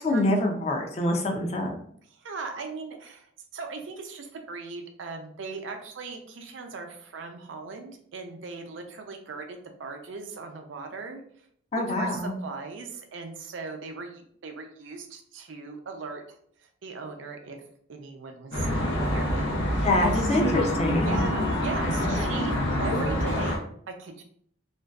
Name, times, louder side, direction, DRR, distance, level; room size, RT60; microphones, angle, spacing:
voice 1, 0.0-1.7 11.7-12.3 19.8-21.2, left 1 dB, 35° left, 2 dB, 0.4 m, -25 dB
voice 2, 2.1-11.2 11.9-16.4 16.8-17.6 17.9-20.4 21.0-24.2, right 4 dB, 80° right, 4 dB, 0.5 m, -39 dB
Traffic noise roadway noise, 18.5-23.6, left 1 dB, 85° left, 0.7 m, -26 dB
2.5 x 2.2 x 2.3 m, 0.63 s
head